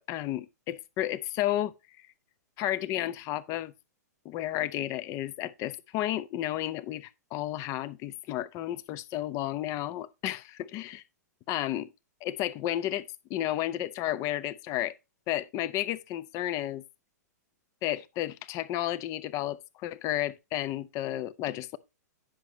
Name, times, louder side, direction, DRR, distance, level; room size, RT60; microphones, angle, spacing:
voice 1, 0.0-1.7 2.6-3.7 4.2-11.0 11.5-11.9 12.2-14.9 15.3-16.8 17.8-21.8, left 13 dB, 35° left, 0.7 m, -32 dB
10.0 x 6.1 x 3.0 m
hypercardioid pair, 115°, 9 cm